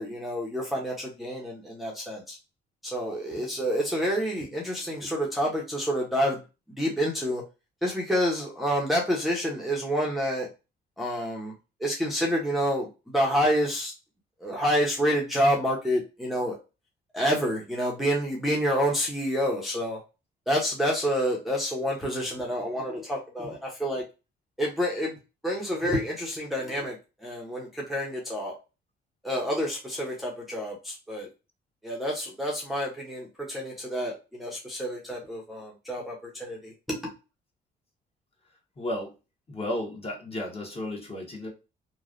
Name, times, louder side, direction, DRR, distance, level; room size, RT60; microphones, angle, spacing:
voice 1, 0.0-2.4 2.8-6.4 6.8-7.4 7.8-10.5 11.0-11.5 11.8-13.9 14.4-16.6 17.1-20.0 20.5-24.0 24.6-25.1 25.4-27.0 27.2-28.5 29.2-31.3 31.8-37.0, equal, ahead, 0.8 m, -28 dB
voice 2, 38.8-39.1 39.5-41.5, left 1 dB, 30° left, 1.2 m, -33 dB
3.1 x 2.3 x 2.4 m
cardioid pair, 90°, 20 cm